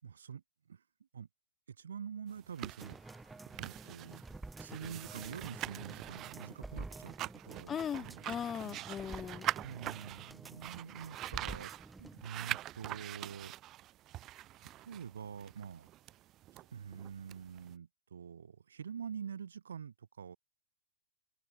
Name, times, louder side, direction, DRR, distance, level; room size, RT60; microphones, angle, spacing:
voice 1, 0.0-0.4 0.7-0.8 1.1-1.3 1.7-7.2 7.4-8.2 8.6-8.8 9.6-11.7 12.0-13.5 14.8-15.9 16.5-20.4, right 7 dB, 80° right, 4.2 m, -46 dB
sound 1, 2.3-17.7, right 14 dB, 30° right, 1.2 m, -44 dB
sound 2, 2.8-12.2 12.6-12.7, right 2 dB, 5° right, 3.0 m, -49 dB
voice 2, 7.7-9.5, left 8 dB, 20° left, 2.5 m, -39 dB
open air
hypercardioid pair, 115°, 0 cm